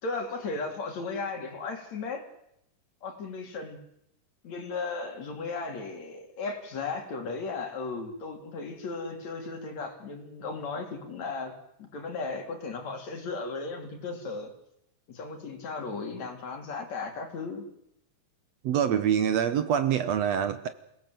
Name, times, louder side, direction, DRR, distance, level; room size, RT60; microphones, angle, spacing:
voice 1, 0.0-2.2 3.0-3.8 4.4-11.5 11.8-14.5 15.1-17.6, left 4 dB, 60° left, 4 dB, 4.0 m, -36 dB
voice 2, 18.6-20.7, right 9 dB, 65° right, 11 dB, 1.9 m, -25 dB
27.5 x 18.0 x 7.7 m, 0.81 s
omnidirectional pair, 3.6 m